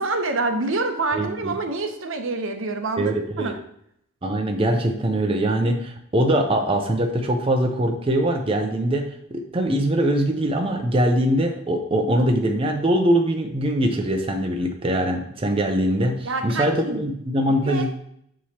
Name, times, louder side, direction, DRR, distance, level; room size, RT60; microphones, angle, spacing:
voice 1, 0.0-3.5 16.2-17.0 17.6-17.9, right 3 dB, 65° right, 6 dB, 0.7 m, -27 dB
voice 2, 1.1-1.5 3.0-3.6 4.2-18.0, right 1 dB, 25° right, 4 dB, 0.5 m, -22 dB
7.1 x 4.7 x 2.8 m, 0.71 s
head